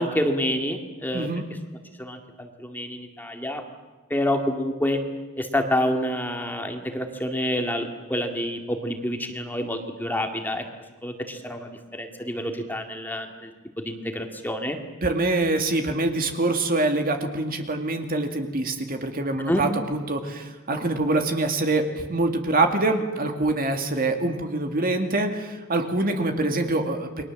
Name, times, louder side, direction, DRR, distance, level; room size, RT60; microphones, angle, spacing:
voice 1, 0.0-1.3 2.0-3.6 4.1-5.0 5.4-10.6 11.0-14.8 19.5-19.6, left 1 dB, 10° left, 4 dB, 2.2 m, -28 dB
voice 2, 1.1-1.4 15.0-27.1, right 2 dB, 45° right, 5 dB, 2.4 m, -25 dB
29.5 x 22.5 x 7.5 m, 1.2 s
head